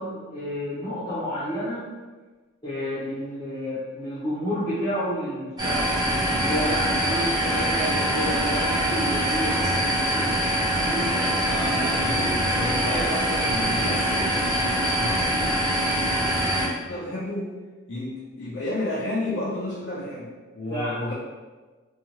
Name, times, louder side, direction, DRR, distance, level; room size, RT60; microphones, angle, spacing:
voice 1, 0.0-1.8 2.6-5.9 6.2-10.4 10.8-11.5 12.8-13.0 20.7-21.1, equal, 20° left, -12 dB, 0.7 m, -30 dB
sound 1, 5.6-16.7, right 1 dB, 20° right, 0.5 m, -24 dB
voice 2, 11.4-14.4 15.0-15.8 16.9-17.5 17.9-21.1, left 1 dB, 80° left, -8 dB, 0.5 m, -31 dB
2.7 x 2.4 x 2.8 m, 1.3 s
head